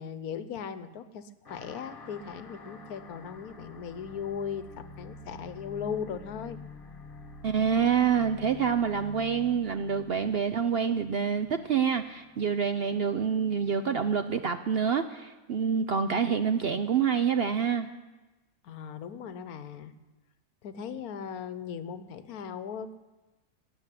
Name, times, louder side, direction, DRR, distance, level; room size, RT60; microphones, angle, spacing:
voice 1, 0.0-6.6 18.6-19.9 20.6-23.0, left 7 dB, 75° left, 12 dB, 1.3 m, -38 dB
sound 1, 1.4-12.4, left 3 dB, 40° left, 1.4 m, -48 dB
voice 2, 7.4-17.9, right 7 dB, 60° right, 9 dB, 0.6 m, -27 dB
18.5 x 7.3 x 9.9 m, 1.1 s
omnidirectional pair, 1.6 m